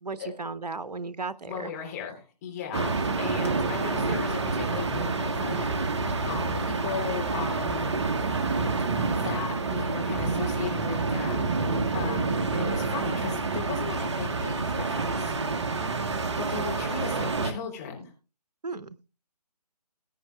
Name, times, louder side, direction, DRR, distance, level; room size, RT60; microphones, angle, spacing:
voice 1, 0.0-1.7 15.8-16.0 18.6-19.0, right 3 dB, 75° right, 15 dB, 0.9 m, -35 dB
voice 2, 1.5-6.0 6.3-7.9 8.8-8.9 9.1-11.4 11.9-15.3 16.4-18.1, left 7 dB, 25° left, 2 dB, 3.4 m, -37 dB
sound 1, 2.7-17.5, right 3 dB, 40° right, 1.2 m, -28 dB
20.5 x 9.3 x 2.3 m, 0.30 s
figure-of-eight pair, 150°, 21 cm